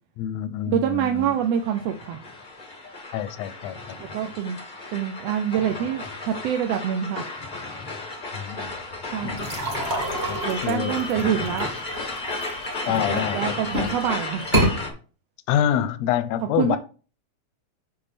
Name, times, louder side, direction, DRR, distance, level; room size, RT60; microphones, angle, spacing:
voice 1, 0.2-1.3 3.1-4.0 8.3-8.8 9.2-9.4 10.3-11.0 12.8-13.9 15.5-16.8, left 10 dB, 80° left, 1.7 m, -27 dB
voice 2, 0.7-2.2 4.0-4.6 4.9-7.3 9.1-9.5 10.4-11.7 12.9-14.5 16.6-16.8, right 9 dB, 75° right, 1.5 m, -26 dB
sound 1, 1.2-14.9, left 2 dB, 45° left, 0.5 m, -33 dB
sound 2, 9.4-13.2 13.6-14.0 14.4-14.7, right 1 dB, 25° right, 1.8 m, -27 dB
6.7 x 5.6 x 4.2 m
omnidirectional pair, 3.3 m